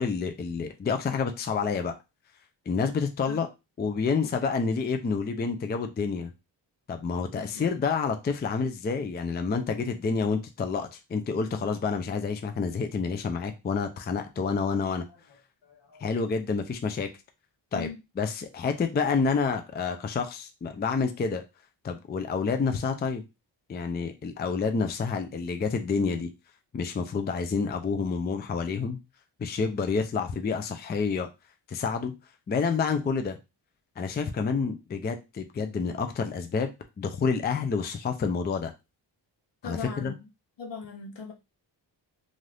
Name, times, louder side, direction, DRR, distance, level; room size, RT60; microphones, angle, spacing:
voice 1, 0.0-1.9 2.7-3.5 3.8-6.3 6.9-15.0 16.0-17.1 17.7-17.9 18.2-21.4 21.8-23.2 23.7-26.3 26.7-29.0 29.4-31.3 31.7-32.1 32.5-33.4 34.0-36.7 37.0-38.7 39.6-40.1, left 5 dB, 25° left, 0.4 m, -28 dB
voice 2, 7.3-7.8 15.6-16.0 17.7-18.0 39.6-40.1 40.6-41.3, left 4 dB, 70° left, 1.0 m, -39 dB
2.6 x 2.4 x 3.3 m
cardioid pair, 90°, 44 cm